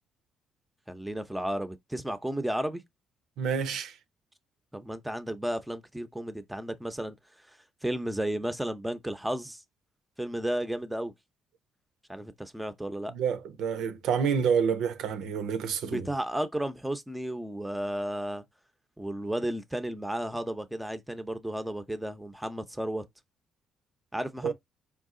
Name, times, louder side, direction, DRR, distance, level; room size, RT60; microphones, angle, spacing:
voice 1, 0.9-2.8 4.7-7.2 7.8-9.6 10.2-11.1 12.1-13.1 15.8-18.4 19.0-23.0 24.1-24.5, right 1 dB, 5° right, 0.7 m, -33 dB
voice 2, 3.4-4.0 13.1-16.1 24.4-24.5, right 7 dB, 80° right, 0.7 m, -28 dB
4.6 x 2.4 x 3.7 m
cardioid pair, 100°, 0 cm